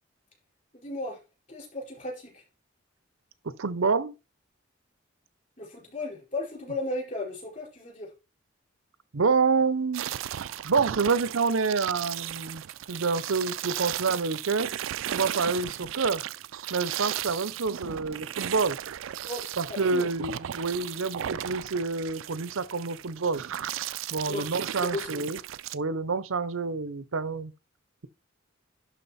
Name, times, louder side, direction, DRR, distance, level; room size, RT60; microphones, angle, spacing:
voice 1, 0.7-1.2 1.5-2.4 5.6-8.1 19.2-20.1 24.3-25.2, left 2 dB, 35° left, 4.4 m, -35 dB
voice 2, 3.4-4.1 9.1-10.1 10.6-12.6 12.9-14.7 15.1-16.2 16.7-18.8 19.6-23.4 24.1-25.4 25.7-27.5, right 4 dB, 90° right, 0.7 m, -27 dB
sound 1, 9.9-25.7, right 11 dB, 75° right, 0.4 m, -35 dB
11.0 x 3.9 x 4.2 m
head